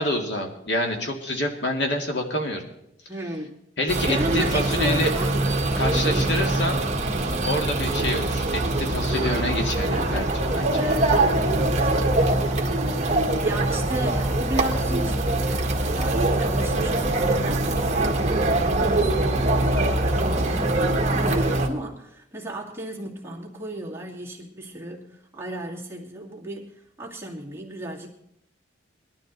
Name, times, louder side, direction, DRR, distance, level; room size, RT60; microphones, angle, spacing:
voice 1, 0.0-2.6 3.8-5.1 5.8-6.8 7.4-10.8, left 1 dB, 65° left, 2 dB, 2.2 m, -27 dB
voice 2, 3.1-3.6 4.1-5.4 5.7-6.4 10.7-13.2 13.4-28.1, right 1 dB, 15° right, -3 dB, 2.3 m, -34 dB
sound 1, 3.9-21.7, right 2 dB, 35° right, 1.7 m, -23 dB
20.0 x 12.0 x 4.0 m, 0.79 s
head